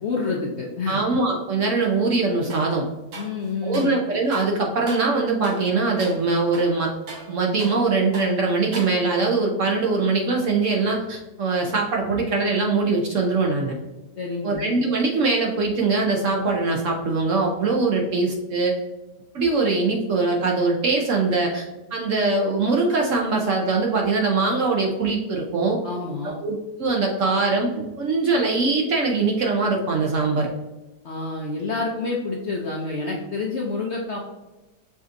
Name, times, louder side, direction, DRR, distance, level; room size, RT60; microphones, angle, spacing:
voice 1, 0.0-1.0 3.2-3.9 14.2-14.6 25.8-26.3 31.0-34.2, left 3 dB, 60° left, -2 dB, 0.7 m, -28 dB
voice 2, 0.9-2.9 3.6-6.9 7.3-13.7 14.4-18.8 19.3-25.8 26.2-30.5, right 3 dB, 60° right, 0 dB, 0.9 m, -22 dB
sound 1, 2.5-2.7 3.1-4.0 4.3-4.5 4.9-5.1 5.4-5.7 6.0-6.2 6.5-7.9 8.1-8.4 8.7-9.3, right 2 dB, 90° right, 1.8 m, -39 dB
5.1 x 3.8 x 2.5 m, 1.0 s
omnidirectional pair, 1.8 m